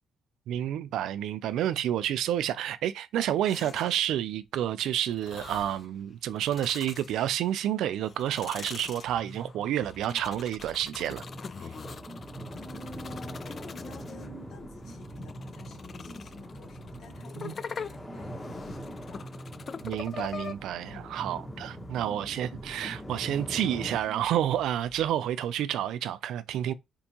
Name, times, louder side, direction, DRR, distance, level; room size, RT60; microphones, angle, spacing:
voice 1, 0.5-11.2 17.4-17.5 19.8-26.7, right 11 dB, 80° right, 0.3 m, -29 dB
sound 1, 3.5-4.1 5.1-5.9 6.3-7.6 8.0-14.3 14.8-20.5, left 6 dB, 45° left, 0.3 m, -43 dB
sound 2, 9.1-25.1, right 2 dB, 25° right, 0.5 m, -49 dB
sound 3, 11.1-24.0, equal, 15° left, 1.4 m, -43 dB
voice 2, 12.5-19.3 20.9-21.4 21.9-22.1, left 2 dB, 70° left, 1.4 m, -49 dB
4.4 x 2.6 x 2.8 m
cardioid pair, 90°, 0 cm